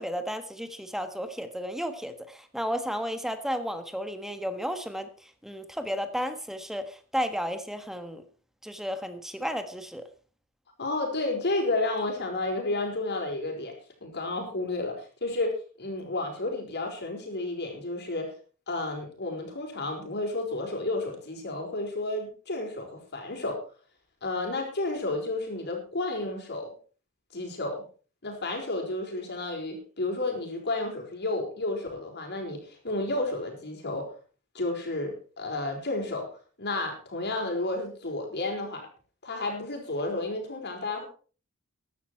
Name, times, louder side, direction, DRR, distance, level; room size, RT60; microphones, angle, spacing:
voice 1, 0.0-8.2 8.6-10.1, equal, ahead, 9 dB, 1.5 m, -33 dB
voice 2, 10.8-13.7 14.0-15.5 15.8-18.3 18.7-23.6 24.2-26.7 27.3-27.8 28.2-34.1 34.5-36.3 36.6-38.9 39.2-41.1, left 2 dB, 50° left, 3 dB, 4.8 m, -31 dB
15.0 x 11.0 x 4.5 m, 0.38 s
head